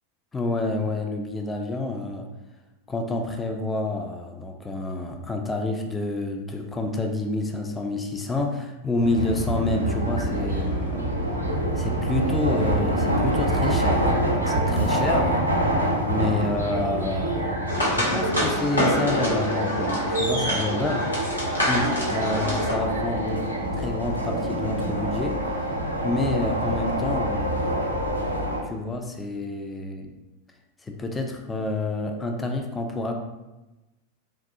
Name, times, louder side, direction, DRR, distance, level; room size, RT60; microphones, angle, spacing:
voice 1, 0.3-2.2 2.9-11.1 11.7-15.4 16.0-21.1 21.7-23.4 23.7-25.4 26.0-28.0 28.6-30.1 30.8-33.1, left 2 dB, 15° left, 3 dB, 0.3 m, -28 dB
sound 1, 9.0-28.6, right 1 dB, 85° right, 0.5 m, -26 dB
sound 2, 17.7-22.7, equal, 80° left, 0.9 m, -26 dB
3.4 x 2.3 x 2.7 m, 1.0 s
figure-of-eight pair, 90°, 0 cm